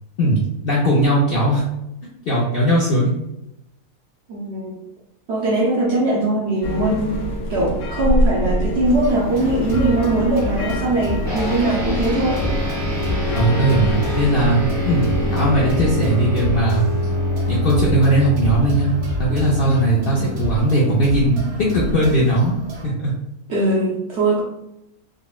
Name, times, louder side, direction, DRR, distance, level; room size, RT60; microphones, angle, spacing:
voice 1, 0.2-1.6 2.2-3.1 13.3-15.0 15.3-16.8 17.5-22.5 22.8-23.1, right 1 dB, 65° left, -5 dB, 0.5 m, -18 dB
voice 2, 4.3-4.7 5.3-12.4 20.1-20.3 23.5-24.4, right 2 dB, 65° right, -4 dB, 0.7 m, -21 dB
sound 1, 6.6-15.7, left 1 dB, 85° left, 1.1 m, -25 dB
sound 2, 8.8-22.9, equal, 90° right, 1.3 m, -30 dB
sound 3, 11.2-20.9, left 1 dB, 15° left, 0.6 m, -25 dB
3.7 x 2.0 x 2.3 m, 0.85 s
omnidirectional pair, 1.6 m